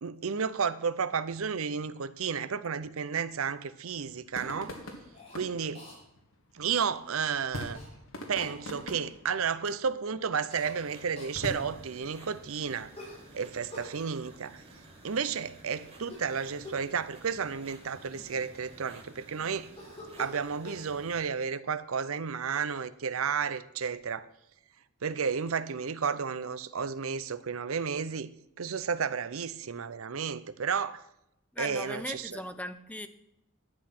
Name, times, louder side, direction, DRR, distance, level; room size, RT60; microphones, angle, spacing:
voice 1, 0.0-4.8 5.3-5.9 6.5-7.8 8.3-12.9 13.3-14.6 15.0-19.7 20.2-24.3 25.0-28.3 28.6-31.0 31.6-32.4, right 6 dB, 70° right, 0.6 m, -32 dB
sound 1, 3.9-14.3, left 1 dB, 70° left, 2.1 m, -45 dB
Cough, 5.1-5.4 5.7-6.0 7.7-7.9 8.4-8.6 10.5-10.8 11.2-11.4 12.9-13.9 16.0-16.3 16.6-16.9 17.6-17.7 17.9-19.0 19.8-20.8, left 1 dB, 30° left, 4.7 m, -46 dB
sound 2, 10.6-21.2, right 1 dB, 30° right, 2.9 m, -53 dB
voice 2, 31.5-33.1, left 1 dB, 5° left, 0.7 m, -38 dB
11.5 x 8.1 x 5.9 m
head